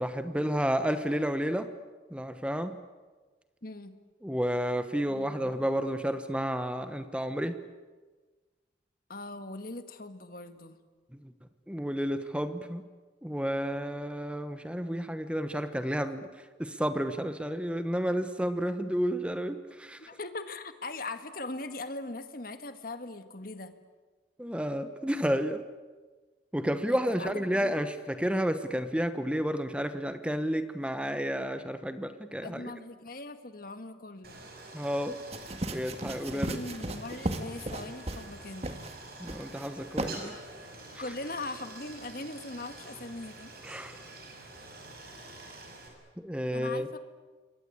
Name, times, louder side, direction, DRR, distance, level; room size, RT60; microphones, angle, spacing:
voice 1, 0.0-1.7 2.1-2.8 4.2-7.6 11.7-12.8 13.2-16.3 16.6-20.0 24.4-25.6 26.5-32.6 34.7-35.2 35.7-36.6 39.2-40.3 43.6-44.0 46.2-46.9, equal, 5° right, 10 dB, 1.1 m, -31 dB
voice 2, 3.6-4.0 9.1-10.8 20.0-23.7 26.9-27.9 32.4-34.4 36.3-39.0 40.2-40.3 41.0-43.5 46.5-47.0, left 2 dB, 50° left, 9 dB, 1.8 m, -41 dB
Stream, 34.2-45.9, right 2 dB, 55° right, 6.2 m, -47 dB
sound 1, 35.3-38.3 38.6-38.9 39.3-39.7 40.0-40.1, right 1 dB, 35° right, 1.9 m, -35 dB
27.5 x 22.5 x 8.6 m, 1.3 s
head